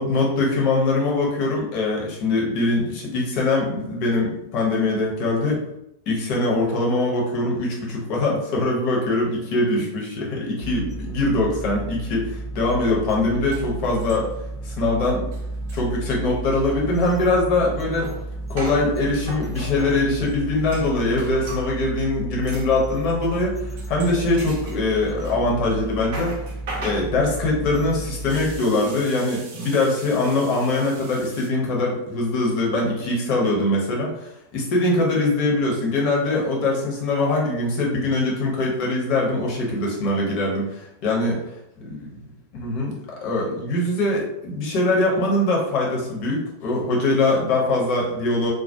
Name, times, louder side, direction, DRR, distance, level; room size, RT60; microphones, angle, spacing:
voice 1, 0.0-5.6 6.1-14.3 14.6-15.3 15.7-18.1 18.5-26.4 26.8-41.4 41.8-42.2 42.5-48.5, left 2 dB, 40° left, -2 dB, 0.9 m, -22 dB
sound 1, 10.6-28.6, right 2 dB, 15° left, 0.3 m, -33 dB
sound 2, 13.1-13.2 13.5-14.5 14.8-14.9 15.2-21.7 22.5-22.7 23.2-23.4 23.8-25.4 25.7-31.5, right 2 dB, 50° right, 0.6 m, -39 dB
2.3 x 2.2 x 2.7 m, 0.84 s
figure-of-eight pair, 90°, 0 cm